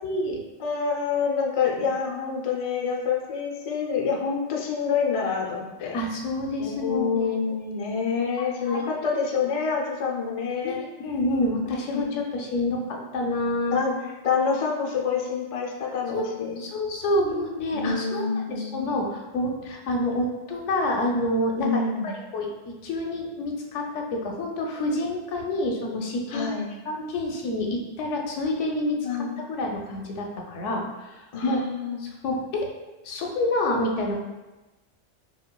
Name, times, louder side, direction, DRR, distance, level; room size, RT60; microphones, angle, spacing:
voice 1, 0.0-0.4 5.9-7.3 8.4-8.9 10.6-13.8 16.1-16.3 16.6-26.5 26.9-29.0 29.5-31.1 31.4-31.6 32.0-32.7 33.0-34.2, left 1 dB, 85° left, 1 dB, 0.9 m, -28 dB
voice 2, 0.6-6.0 6.6-10.8 11.7-12.1 13.7-16.6 17.7-18.9 21.6-22.1 26.3-26.7 29.0-29.3 31.3-32.0, left 5 dB, 55° left, -1 dB, 0.4 m, -27 dB
5.0 x 2.3 x 2.2 m, 1.1 s
omnidirectional pair, 1.2 m